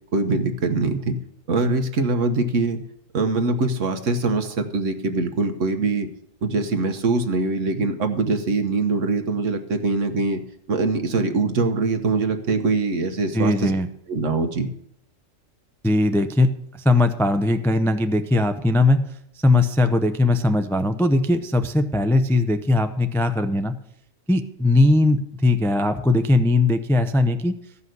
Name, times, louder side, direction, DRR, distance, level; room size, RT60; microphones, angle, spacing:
voice 1, 0.1-1.2 1.5-2.8 3.1-6.1 6.4-10.4 10.7-13.7 14.1-14.7, right 3 dB, 70° right, 7 dB, 1.5 m, -23 dB
voice 2, 13.3-13.9 15.8-16.5 16.8-19.0 19.4-23.8 24.3-27.5, left 2 dB, 5° left, 8 dB, 0.3 m, -19 dB
14.5 x 5.6 x 7.8 m, 0.73 s
omnidirectional pair, 1.3 m